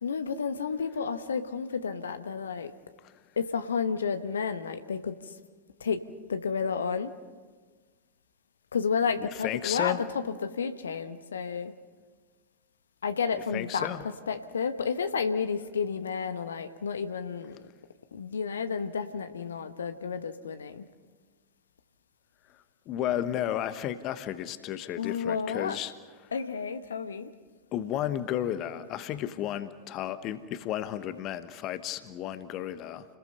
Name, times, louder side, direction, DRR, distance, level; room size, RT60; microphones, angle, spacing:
voice 1, 0.0-2.7 3.4-5.2 5.8-6.0 6.3-7.1 8.7-10.0 10.3-11.7 13.0-13.9 14.3-17.6 18.1-20.8 25.0-25.8 26.3-27.3, left 6 dB, 70° left, 10 dB, 1.1 m, -31 dB
voice 2, 9.2-10.0 13.3-14.0 22.9-25.9 26.2-26.3 27.7-33.1, left 11 dB, 35° left, 13 dB, 1.1 m, -33 dB
30.0 x 20.5 x 5.5 m, 1.4 s
figure-of-eight pair, 90°, 0 cm